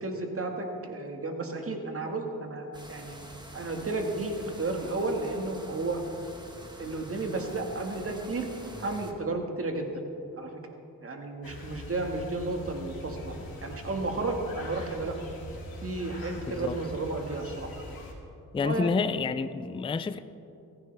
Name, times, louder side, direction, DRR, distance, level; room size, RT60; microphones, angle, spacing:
voice 1, 0.0-3.2 3.5-6.0 6.8-8.5 8.8-10.0 10.4-10.6 11.0-13.3 13.6-15.2 15.8-17.7 18.6-19.0, right 2 dB, 35° right, 3 dB, 1.8 m, -32 dB
sound 1, 2.7-9.1, right 1 dB, 10° right, 1.5 m, -47 dB
sound 2, 11.4-18.1, left 1 dB, 65° left, 3.5 m, -43 dB
voice 2, 16.5-16.8 18.5-20.2, left 5 dB, 15° left, 12 dB, 0.4 m, -29 dB
15.5 x 14.5 x 3.5 m, 2.7 s
cardioid pair, 75°, 38 cm